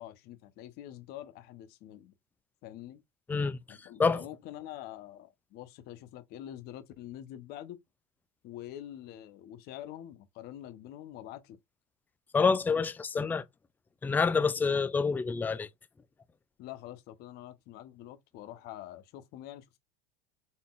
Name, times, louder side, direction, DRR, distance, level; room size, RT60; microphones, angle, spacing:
voice 1, 0.0-2.1 2.6-3.0 3.7-7.8 8.4-11.6 16.6-19.8, left 12 dB, 55° left, 0.8 m, -45 dB
voice 2, 3.3-4.2 12.3-13.4 14.0-15.7, left 5 dB, 10° left, 0.4 m, -27 dB
4.1 x 3.7 x 2.4 m
supercardioid pair, 120°, 20 cm